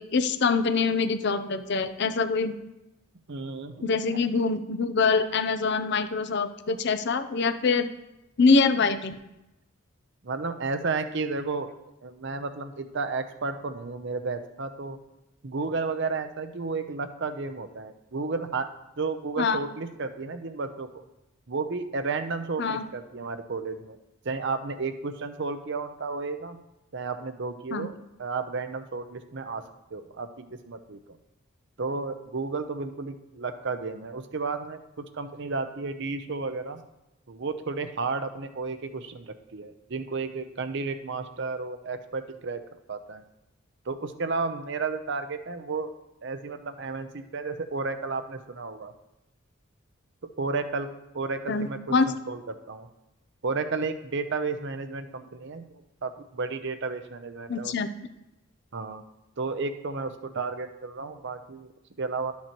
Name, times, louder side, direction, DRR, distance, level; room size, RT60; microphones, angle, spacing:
voice 1, 0.0-2.5 3.8-7.9 8.4-9.1 19.4-19.6 22.6-22.9 27.7-27.9 51.5-52.1 57.5-57.9, left 4 dB, 55° left, 11 dB, 0.6 m, -24 dB
voice 2, 3.3-3.9 10.2-11.7 12.0-15.0 15.4-18.7 19.0-21.0 21.5-24.0 24.2-26.6 26.9-27.9 28.2-29.6 29.9-31.2 31.8-36.8 37.3-42.6 42.9-43.2 43.9-45.9 46.2-48.9 50.4-51.8 52.1-52.9 53.4-57.7 58.7-59.0 59.4-61.7 62.0-62.3, right 4 dB, 60° right, 9 dB, 0.7 m, -32 dB
12.5 x 7.3 x 3.0 m, 0.93 s
head